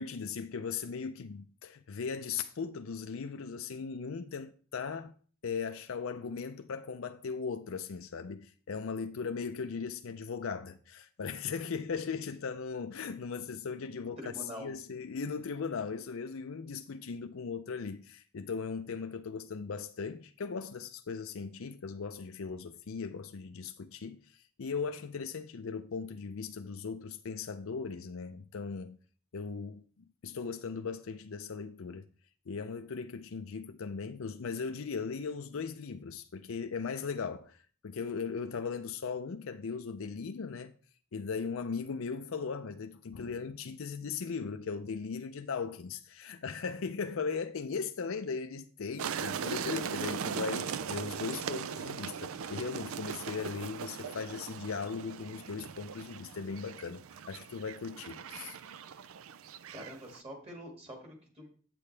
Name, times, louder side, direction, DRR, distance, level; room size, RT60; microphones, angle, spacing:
voice 1, 0.0-5.1 5.4-14.2 14.6-29.0 29.3-32.1 32.5-40.7 41.1-58.6, left 5 dB, 70° left, 0.5 m, -38 dB
voice 2, 14.2-14.7 59.7-61.5, equal, 30° right, 2.1 m, -45 dB
sound 1, 49.0-60.2, right 7 dB, 75° right, 0.4 m, -39 dB
8.6 x 8.4 x 3.3 m
head